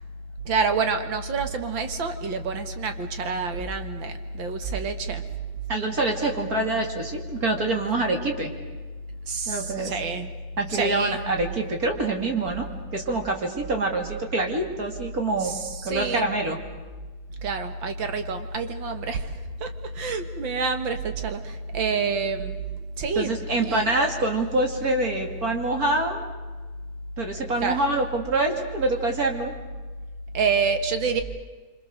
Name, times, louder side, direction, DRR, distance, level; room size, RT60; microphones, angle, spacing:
voice 1, 0.4-5.2 9.3-10.3 10.7-11.3 15.4-16.3 17.4-19.3 19.6-19.7 19.9-22.6 23.0-23.3 23.6-23.9 27.6-27.8 30.3-31.2, right 5 dB, 50° right, 8 dB, 1.8 m, -27 dB
voice 2, 5.7-8.5 9.5-9.9 10.6-12.7 12.9-15.5 15.8-16.6 23.2-26.2 27.2-29.5, right 2 dB, 30° right, 3 dB, 2.6 m, -26 dB
26.5 x 26.5 x 6.6 m, 1.3 s
omnidirectional pair, 3.5 m